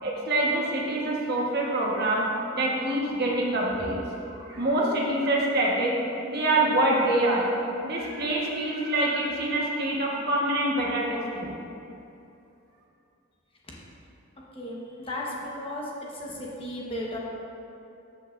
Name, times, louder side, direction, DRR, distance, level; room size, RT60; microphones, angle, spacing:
voice 1, 0.0-4.0 4.3-5.9 6.3-7.5 7.8-11.5, right 1 dB, 50° right, -3 dB, 1.3 m, -25 dB
voice 2, 14.5-17.2, left 1 dB, 25° left, -4 dB, 1.1 m, -35 dB
13.0 x 5.8 x 2.6 m, 2.8 s
head